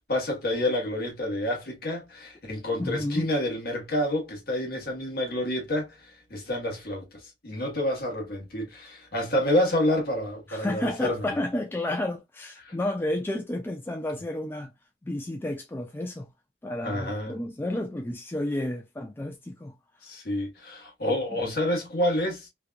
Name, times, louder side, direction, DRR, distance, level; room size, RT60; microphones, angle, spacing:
voice 1, 0.0-11.2 12.6-12.7 16.8-17.3 20.0-22.5, left 1 dB, 60° left, 1.3 m, -28 dB
voice 2, 2.8-3.3 10.5-14.7 15.0-16.3 16.6-19.8, left 1 dB, 10° left, 0.3 m, -31 dB
3.2 x 2.3 x 2.4 m
head